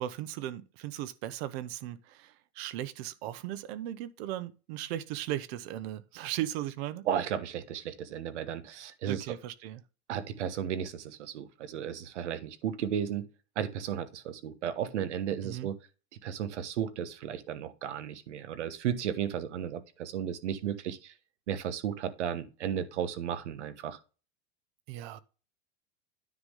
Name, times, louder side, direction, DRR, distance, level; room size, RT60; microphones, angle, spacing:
voice 1, 0.0-7.1 9.0-9.8 15.4-15.7 24.9-25.2, right 13 dB, 65° right, 1.0 m, -37 dB
voice 2, 7.1-9.3 10.1-13.3 13.6-15.7 16.2-21.1 21.5-24.0, right 9 dB, 90° right, 1.2 m, -34 dB
9.7 x 3.8 x 6.4 m
supercardioid pair, 125°, 34 cm